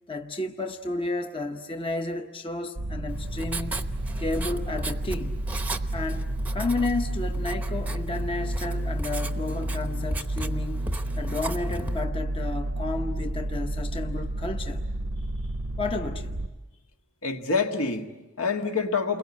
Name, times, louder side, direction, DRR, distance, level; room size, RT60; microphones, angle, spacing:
voice 1, 0.1-3.9 4.2-5.5 5.9-14.9 15.8-16.4, left 2 dB, 25° left, 0.8 m, -32 dB
sound 1, 2.8-16.5, right 1 dB, 80° right, 0.9 m, -31 dB
Writing, 3.1-12.0, right 1 dB, 10° right, 0.8 m, -36 dB
voice 2, 17.2-19.2, left 4 dB, 75° left, 1.7 m, -27 dB
29.5 x 22.0 x 8.5 m
head